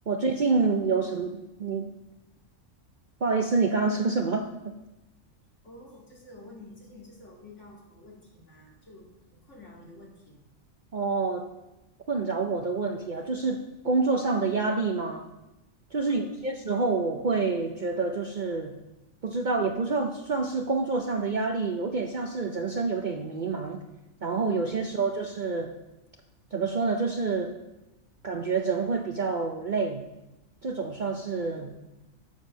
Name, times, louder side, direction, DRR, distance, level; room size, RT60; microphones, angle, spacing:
voice 1, 0.1-1.9 3.2-4.7 10.9-11.5 12.1-15.3 15.9-18.7 19.2-23.8 24.2-25.7 26.5-27.6 28.2-30.0 30.6-31.7, right 4 dB, 50° right, 4 dB, 0.6 m, -27 dB
voice 2, 5.6-10.4 16.0-16.2 24.8-25.5 31.4-31.8, left 2 dB, 65° left, -3 dB, 2.8 m, -50 dB
8.6 x 7.4 x 6.1 m, 0.99 s
omnidirectional pair, 1.4 m